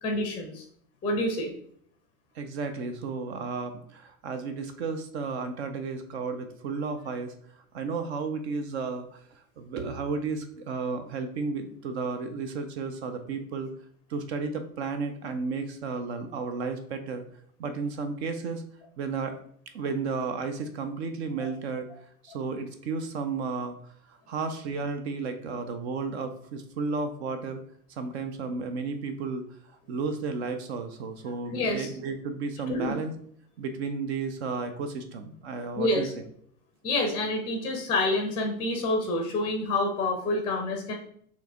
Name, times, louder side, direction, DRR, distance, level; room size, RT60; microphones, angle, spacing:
voice 1, 0.0-0.6 1.0-1.5 21.4-21.5 31.5-31.9 32.7-32.9 35.8-36.1 36.8-40.9, left 2 dB, 10° left, 3 dB, 0.6 m, -28 dB
voice 2, 2.3-7.3 7.7-13.7 14.1-17.2 17.6-18.6 19.0-19.4 19.7-21.9 22.2-23.8 24.1-27.6 27.9-29.4 29.9-33.1 33.6-36.1, right 4 dB, 45° right, 8 dB, 0.6 m, -33 dB
4.6 x 3.0 x 3.4 m, 0.63 s
figure-of-eight pair, 95°, 45 cm